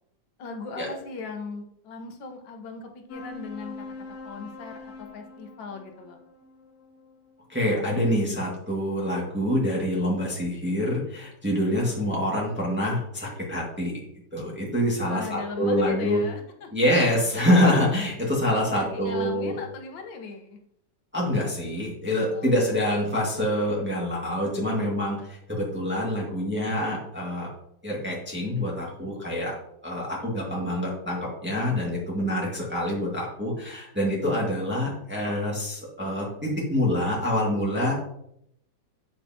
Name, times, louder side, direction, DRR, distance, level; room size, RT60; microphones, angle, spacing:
voice 1, 0.4-3.9 4.2-6.2 15.0-16.7 18.7-20.6 22.3-22.5, left 4 dB, 80° left, 4 dB, 1.8 m, -39 dB
sound 1, 3.1-7.9, left 3 dB, 55° left, 2.1 m, -43 dB
voice 2, 7.5-13.9 14.3-16.2 16.7-19.5 21.1-27.5 27.8-29.5 29.8-37.9, left 1 dB, 5° right, -4 dB, 1.7 m, -26 dB
8.1 x 6.8 x 2.8 m, 0.74 s
omnidirectional pair, 2.0 m